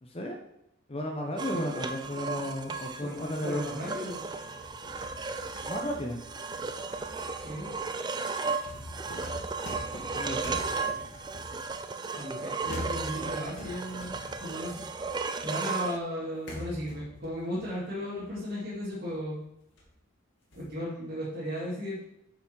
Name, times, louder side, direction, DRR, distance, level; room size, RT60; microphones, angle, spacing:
voice 1, 0.0-0.4 0.9-3.6 5.6-6.2 10.1-10.6, left 1 dB, 25° left, 3 dB, 0.7 m, -34 dB
sound 1, 1.4-16.0, right 4 dB, 20° right, 0.4 m, -35 dB
voice 2, 1.5-1.8 3.0-4.3 7.4-7.7 12.1-14.8 15.4-19.4 20.6-22.0, equal, 45° right, -9 dB, 2.5 m, -36 dB
sound 2, 4.4-12.0 12.6-15.5 15.9-16.0 16.5-19.4 19.8-19.9 20.5-20.7, left 1 dB, 55° left, 2.4 m, -44 dB
8.8 x 5.8 x 4.7 m, 0.82 s
head